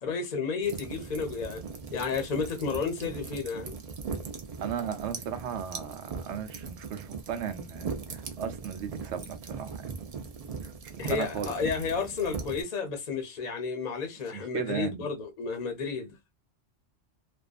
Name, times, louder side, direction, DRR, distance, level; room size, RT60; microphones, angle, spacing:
voice 1, 0.0-1.6 1.9-3.7 11.0-16.3, left 5 dB, 50° left, 0.7 m, -32 dB
sound 1, 0.6-12.6, right 5 dB, 50° right, 0.4 m, -39 dB
voice 2, 4.6-9.9 10.6-11.5 14.3-15.1, right 8 dB, 90° right, 0.9 m, -36 dB
2.5 x 2.2 x 2.3 m
omnidirectional pair, 1.2 m